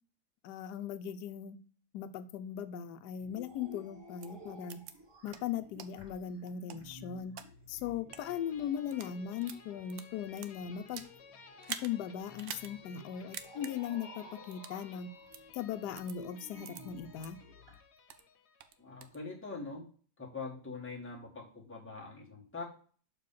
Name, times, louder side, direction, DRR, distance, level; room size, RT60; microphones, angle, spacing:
voice 1, 0.4-1.6 1.9-4.8 5.2-7.3 7.7-11.0 11.7-15.1 15.5-17.4, left 9 dB, 80° left, 9 dB, 1.1 m, -39 dB
sound 1, 3.2-17.8, equal, 15° right, 1.2 m, -55 dB
sound 2, 4.2-4.3 4.7-4.9 5.3-5.4 5.8-5.9 6.5-7.5 8.0-8.2 8.8-9.1 9.4-11.1 11.6-11.9 12.4-12.7 13.0-13.1 13.3-13.7 14.5-14.8 15.3-15.4 16.0-16.2 16.6-16.8 17.2-17.3 17.7-18.3 18.6-19.2, right 8 dB, 65° right, 0.7 m, -45 dB
sound 3, 8.1-18.8, left 5 dB, 60° left, 0.7 m, -56 dB
voice 2, 18.8-19.9 20.2-22.6, left 4 dB, 10° left, -3 dB, 1.4 m, -43 dB
6.8 x 3.3 x 5.5 m, 0.44 s
omnidirectional pair, 1.8 m